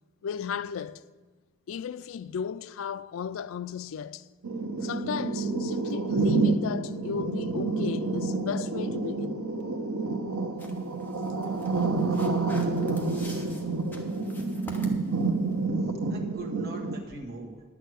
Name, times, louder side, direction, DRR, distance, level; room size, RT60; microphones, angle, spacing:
voice 1, 0.2-1.0 1.7-4.3 4.8-9.4, left 7 dB, 70° left, 0.3 m, -35 dB
sound 1, 4.4-17.0, right 3 dB, 90° right, 0.9 m, -28 dB
sound 2, 10.6-15.7, left 1 dB, 10° left, 0.9 m, -49 dB
voice 2, 13.1-13.5 15.8-17.6, right 2 dB, 45° right, 1.8 m, -42 dB
10.5 x 6.3 x 7.9 m
head